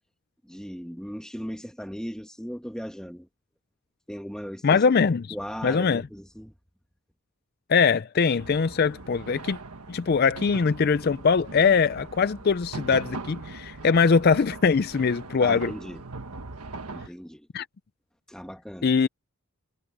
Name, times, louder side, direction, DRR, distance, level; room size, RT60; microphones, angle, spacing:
voice 1, 0.4-3.3 4.1-4.8 5.3-6.5 15.4-16.0 16.9-17.5 18.3-19.0, equal, 5° left, 2.1 m, -37 dB
voice 2, 4.6-5.4 5.6-6.1 7.7-9.6 9.9-15.7 17.5-17.7 18.8-19.1, left 5 dB, 45° left, 0.4 m, -22 dB
sound 1, 8.4-17.1, right 3 dB, 90° right, 1.5 m, -40 dB
head